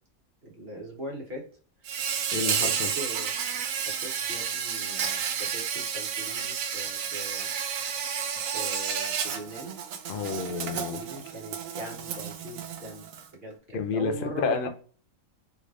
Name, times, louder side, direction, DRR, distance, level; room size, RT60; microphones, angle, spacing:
voice 1, 0.4-1.5 2.3-3.3 3.7-7.5 8.5-9.7 10.7-13.1 13.3-14.7, equal, 45° right, 1.3 m, -40 dB
Insect, 1.8-13.3, right 7 dB, 75° right, 1.0 m, -31 dB
voice 2, 2.3-2.9 10.1-11.0 13.7-14.7, left 5 dB, 65° left, 0.5 m, -30 dB
3.7 x 3.2 x 2.4 m
omnidirectional pair, 1.5 m